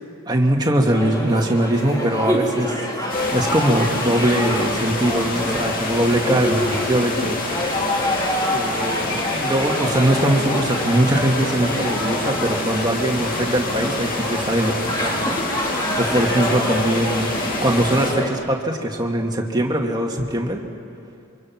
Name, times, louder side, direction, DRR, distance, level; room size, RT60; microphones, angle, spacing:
voice 1, 0.3-7.8 8.5-17.3 17.6-20.6, right 1 dB, 20° right, 1 dB, 2.2 m, -21 dB
sound 1, 0.9-18.3, left 1 dB, 20° left, 2.9 m, -26 dB
sound 2, 3.1-18.1, left 2 dB, 40° left, 2.6 m, -28 dB
26.5 x 25.5 x 6.0 m, 2.5 s
head